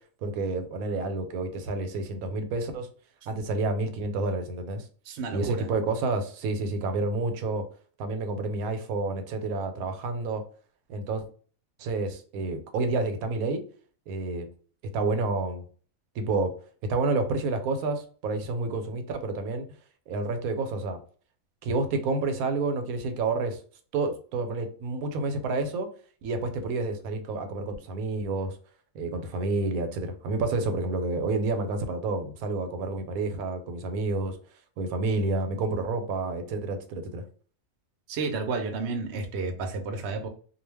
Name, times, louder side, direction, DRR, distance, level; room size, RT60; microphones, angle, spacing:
voice 1, 0.2-2.9 3.3-4.9 5.3-7.6 8.0-10.4 10.9-11.3 11.8-13.6 14.1-14.5 14.9-15.6 16.2-16.5 16.9-19.6 20.1-21.0 21.6-23.6 23.9-25.9 26.2-28.6 28.9-34.4 34.8-37.2, right 3 dB, 80° right, 7 dB, 1.0 m, -29 dB
voice 2, 5.1-5.7 38.1-40.3, right 4 dB, 60° right, 4 dB, 0.7 m, -31 dB
2.3 x 2.2 x 3.2 m, 0.42 s
omnidirectional pair, 1.5 m